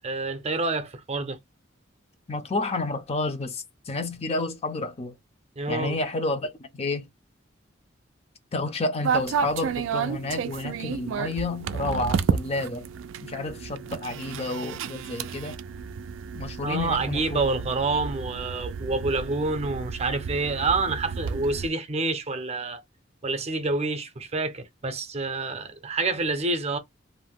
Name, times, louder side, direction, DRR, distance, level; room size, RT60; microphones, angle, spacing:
voice 1, 0.0-1.4 5.6-6.0 16.6-22.8 23.2-26.8, right 3 dB, 35° right, 0.6 m, -28 dB
voice 2, 2.3-5.1 5.7-7.1 8.5-12.9 13.2-15.6 16.3-17.4, left 2 dB, 30° left, 0.5 m, -30 dB
sound 1, 9.0-21.7, right 6 dB, 80° right, 0.3 m, -31 dB
2.6 x 2.1 x 3.4 m
head